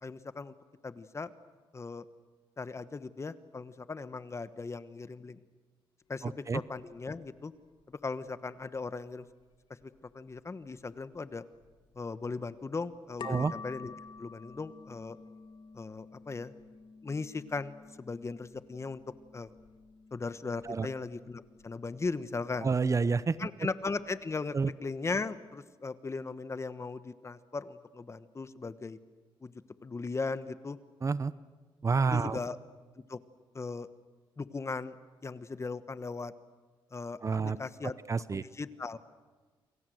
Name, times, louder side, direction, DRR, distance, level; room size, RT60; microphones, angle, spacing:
voice 1, 0.0-0.5 0.8-1.3 1.7-2.0 2.6-5.4 6.1-7.5 7.9-9.3 9.8-11.4 11.9-13.9 14.2-15.2 15.7-16.5 17.0-19.0 19.3-19.5 20.1-22.7 23.4-29.0 29.4-29.5 29.8-30.8 32.1-32.6 33.1-33.2 33.5-33.9 34.4-34.9 35.2-36.3 36.9-37.9 38.3-39.0, left 4 dB, 30° left, 13 dB, 1.2 m, -38 dB
sound 1, 6.0-24.6, left 5 dB, 60° left, 2.2 m, -52 dB
voice 2, 6.2-6.6 13.2-13.5 20.6-20.9 22.6-23.4 24.5-24.7 31.0-31.3 31.8-32.4 37.2-37.6 38.1-38.4, right 4 dB, 35° right, 16 dB, 0.8 m, -29 dB
29.0 x 23.0 x 7.9 m, 1.3 s
cardioid pair, 90°, 9 cm